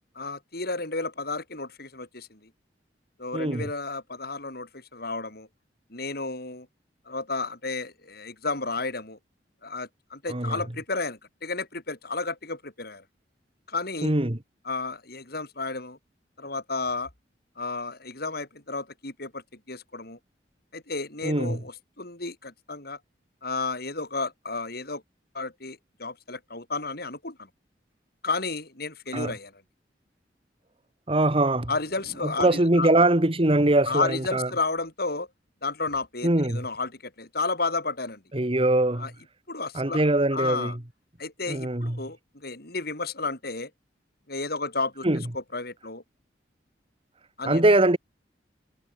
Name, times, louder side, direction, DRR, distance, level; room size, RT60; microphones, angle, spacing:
voice 1, 0.2-2.5 3.2-5.5 5.9-6.7 7.1-9.2 9.6-13.0 13.7-14.1 14.6-16.0 16.4-17.1 17.6-20.2 20.7-23.0 23.4-25.0 25.3-27.5 28.2-29.5 31.7-32.9 33.9-35.3 35.6-38.2 39.0-39.1 39.5-40.0 40.3-40.8 41.2-43.7 44.3-45.0 45.3-46.0 47.4-47.6, left 3 dB, 60° left, 7.4 m, -32 dB
voice 2, 3.3-3.7 10.3-10.6 14.0-14.4 21.2-21.6 29.1-29.3 31.1-31.7 32.2-34.5 36.2-36.7 38.3-39.1 39.7-40.8 41.5-42.0 45.0-45.2 47.5-48.0, right 1 dB, 30° right, 1.8 m, -22 dB
head